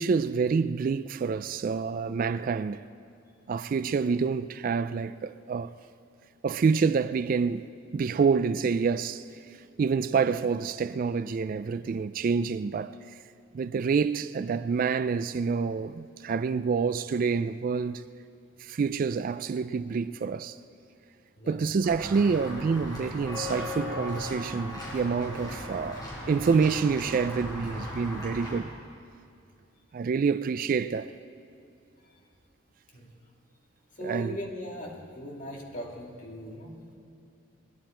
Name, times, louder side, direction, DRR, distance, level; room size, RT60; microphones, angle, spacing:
voice 1, 0.0-2.9 3.5-5.7 6.4-7.6 7.9-9.2 9.8-12.9 13.5-18.0 18.6-20.6 21.5-28.7 29.9-31.2 34.0-34.4, right 5 dB, 45° right, 0.3 m, -27 dB
Walk footsteps / Bell, 21.8-28.5, left 2 dB, 20° left, 4.6 m, -37 dB
voice 2, 34.0-36.8, equal, 40° left, 2.2 m, -39 dB
22.0 x 11.0 x 4.4 m
head